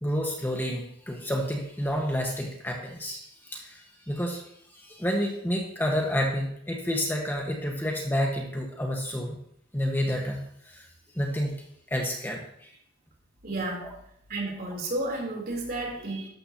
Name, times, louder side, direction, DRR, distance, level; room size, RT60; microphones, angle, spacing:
voice 1, 0.0-3.2 3.4-4.4 4.7-9.4 9.7-10.4 10.7-10.8 11.1-11.6 11.9-12.7 13.8-13.9, equal, 10° left, 0 dB, 1.3 m, -29 dB
voice 2, 13.4-13.9 14.3-16.3, right 2 dB, 50° right, -1 dB, 3.4 m, -32 dB
12.5 x 12.5 x 2.9 m, 0.71 s
head